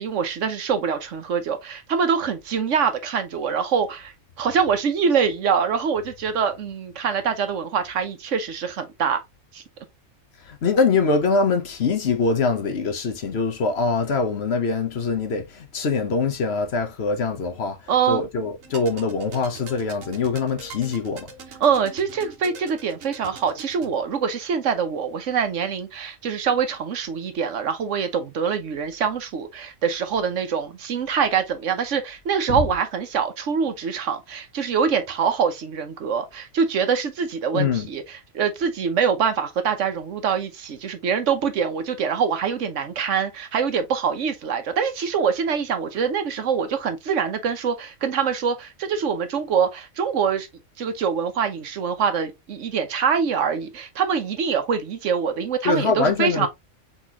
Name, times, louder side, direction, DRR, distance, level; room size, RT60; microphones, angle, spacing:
voice 1, 0.0-9.2 9.5-9.6 17.9-18.2 21.6-50.5 50.8-56.5, right 6 dB, 70° right, 1.2 m, -24 dB
voice 2, 10.4-21.3 32.5-32.6 37.5-37.9 55.6-56.5, left 4 dB, 55° left, 1.1 m, -23 dB
sound 1, 18.6-24.0, right 5 dB, 90° right, 1.4 m, -42 dB
4.3 x 4.2 x 2.8 m
omnidirectional pair, 1.3 m